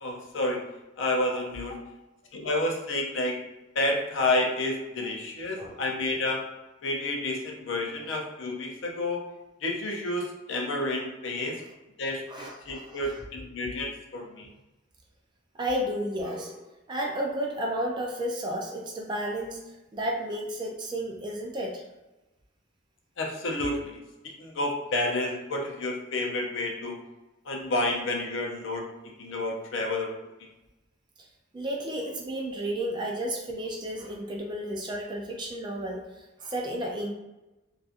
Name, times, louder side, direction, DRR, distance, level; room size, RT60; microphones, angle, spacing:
voice 1, 0.0-0.6 1.0-1.8 2.3-3.4 3.8-6.4 6.8-9.2 9.6-11.6 12.0-14.5 23.2-24.0 24.4-27.0 27.5-28.9 29.2-30.1, left 2 dB, 70° left, 1 dB, 0.5 m, -30 dB
voice 2, 12.3-13.0 15.6-16.6 16.9-19.6 19.9-21.8 31.5-36.0 36.4-37.1, right 1 dB, 20° right, -1 dB, 0.3 m, -32 dB
2.6 x 2.3 x 2.4 m, 1.0 s
head